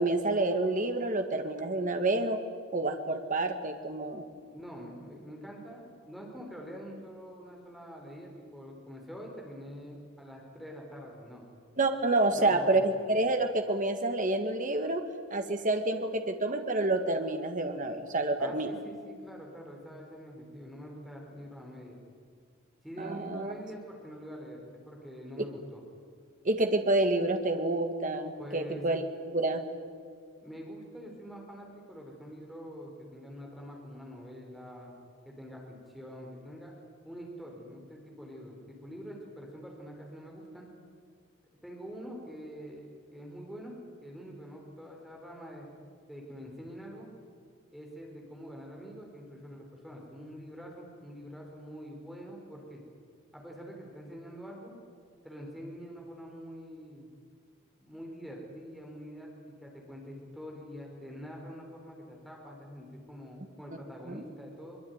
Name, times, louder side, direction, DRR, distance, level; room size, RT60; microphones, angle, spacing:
voice 1, 0.0-2.4 2.7-4.2 11.8-15.0 15.3-18.7 23.0-23.5 26.4-29.0 29.3-29.6 64.1-64.2, right 2 dB, 35° right, 6 dB, 1.7 m, -28 dB
voice 2, 4.1-11.4 12.3-12.9 18.4-22.0 22.8-25.8 28.4-28.8 30.4-34.9 35.3-36.7 37.0-40.7 41.6-43.7 44.0-45.7 46.1-47.1 47.7-52.8 53.3-54.7 55.2-57.1 57.8-59.3 59.6-64.8, equal, ahead, -1 dB, 4.5 m, -45 dB
23.0 x 22.0 x 9.5 m, 2.1 s
head